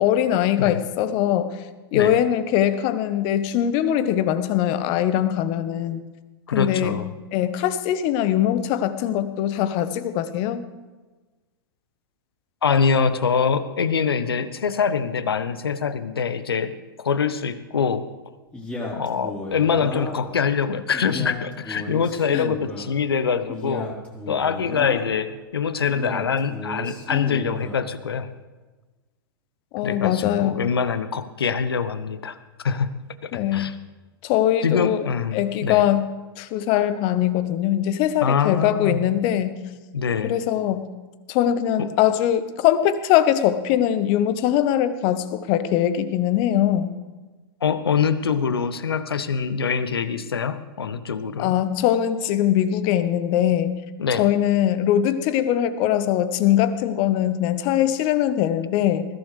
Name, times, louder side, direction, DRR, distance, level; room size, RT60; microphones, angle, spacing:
voice 1, 0.0-1.6 1.9-6.0 6.5-7.0 7.3-10.6 22.3-22.4 29.7-30.6 33.3-33.7 34.2-35.1 35.3-36.1 36.4-39.6 40.2-40.9 41.3-46.9 51.4-53.7 54.2-59.1, left 11 dB, 40° left, 12 dB, 1.1 m, -21 dB
voice 2, 6.5-7.1 12.6-16.7 17.0-18.0 18.9-23.9 24.3-28.3 29.8-32.9 33.2-33.7 34.6-35.8 38.2-39.1 39.9-40.3 41.8-41.9 47.6-51.5 54.0-54.3, left 6 dB, 75° left, 13 dB, 1.0 m, -24 dB
Male speech man speaking, 18.5-20.3 20.9-22.9 23.5-25.2 25.9-27.9, left 2 dB, 10° left, 3.8 m, -34 dB
20.5 x 15.5 x 3.3 m, 1.3 s
figure-of-eight pair, 105°, 13 cm